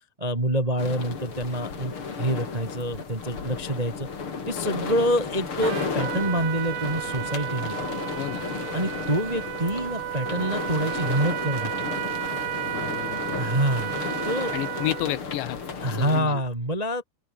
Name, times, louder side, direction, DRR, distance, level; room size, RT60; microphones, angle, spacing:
voice 1, 0.2-4.1 4.5-7.8 8.7-11.9 13.4-13.9 14.2-14.5 15.8-17.0, right 1 dB, 15° right, 1.5 m, -26 dB
sound 1, 0.8-16.2, left 5 dB, 30° left, 3.3 m, -33 dB
Trumpet, 5.6-15.2, right 18 dB, 80° right, 3.2 m, -33 dB
voice 2, 12.7-13.4 14.5-15.6 15.9-16.4, left 15 dB, 75° left, 3.3 m, -31 dB
open air
omnidirectional pair, 5.3 m